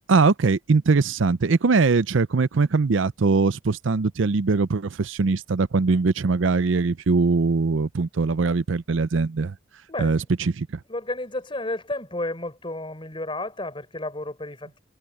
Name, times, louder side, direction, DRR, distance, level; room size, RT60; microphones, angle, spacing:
voice 1, 0.1-9.5 10.0-10.7, right 4 dB, 70° right, 0.6 m, -21 dB
voice 2, 9.9-10.2 10.9-14.8, left 2 dB, 25° left, 4.6 m, -32 dB
head